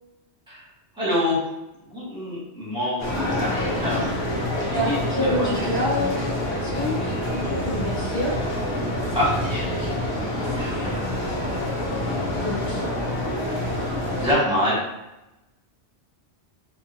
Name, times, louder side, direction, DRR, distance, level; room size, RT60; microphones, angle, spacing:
voice 1, 1.0-1.4 1.9-4.1 4.6-5.7 9.1-11.0 11.4-11.6 11.9-12.3 14.2-14.8, left 1 dB, 5° right, -8 dB, 1.3 m, -27 dB
sound 1, 3.0-14.3, left 1 dB, 70° left, 1.0 m, -27 dB
voice 2, 4.7-8.3 12.4-12.8, left 1 dB, 15° left, -9 dB, 1.3 m, -27 dB
3.6 x 2.5 x 2.7 m, 0.96 s
omnidirectional pair, 1.2 m